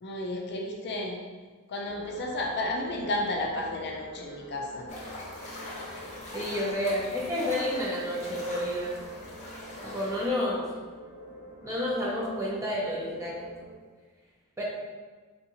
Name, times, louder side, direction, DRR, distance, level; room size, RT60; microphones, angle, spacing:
voice 1, 0.0-1.2 1.7-4.9, left 1 dB, 50° left, 0 dB, 0.5 m, -32 dB
sound 1, 1.8-13.7, equal, 60° right, 1.2 m, -46 dB
sound 2, 4.9-10.3, left 1 dB, 30° left, 0.8 m, -42 dB
voice 2, 6.3-9.0 9.8-10.6 11.6-13.4 14.6-14.7, left 1 dB, 15° right, -5 dB, 0.7 m, -30 dB
3.6 x 2.8 x 2.8 m, 1.4 s
head